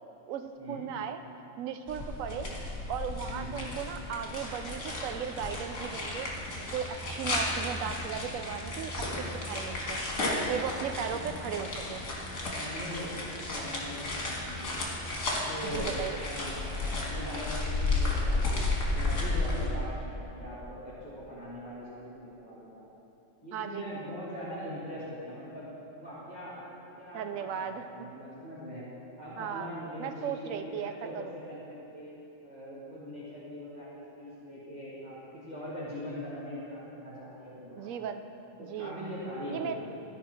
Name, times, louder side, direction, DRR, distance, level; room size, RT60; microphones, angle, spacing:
voice 1, 0.3-1.2 1.6-2.5 2.9-6.3 6.7-10.0 10.5-12.0 15.6-16.2 23.5-23.9 27.1-27.9 29.4-29.7 30.0-31.3 37.8-38.2 38.6-39.0 39.5-39.7, right 8 dB, 85° right, 7 dB, 1.0 m, -36 dB
sound 1, 1.9-19.7, left 2 dB, 70° left, 1.7 m, -33 dB
voice 2, 3.3-3.7 11.1-11.2 12.5-14.7 15.2-15.9 16.2-22.8 23.4-26.6 27.0-28.8 29.2-32.1 32.4-38.1 38.6-39.8, equal, 35° right, -10 dB, 1.8 m, -41 dB
13.0 x 5.3 x 4.3 m, 2.9 s
omnidirectional pair, 1.4 m